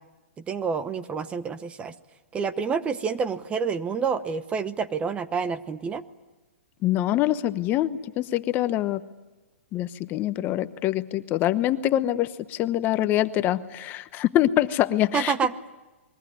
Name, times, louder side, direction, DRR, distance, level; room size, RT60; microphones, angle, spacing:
voice 1, 0.5-1.9 2.3-6.0 15.1-15.5, right 6 dB, 15° right, 13 dB, 0.9 m, -28 dB
voice 2, 6.8-9.0 9.7-15.3, left 13 dB, 25° left, 12 dB, 0.9 m, -24 dB
29.0 x 22.0 x 9.4 m, 1.1 s
hypercardioid pair, 145°, 7 cm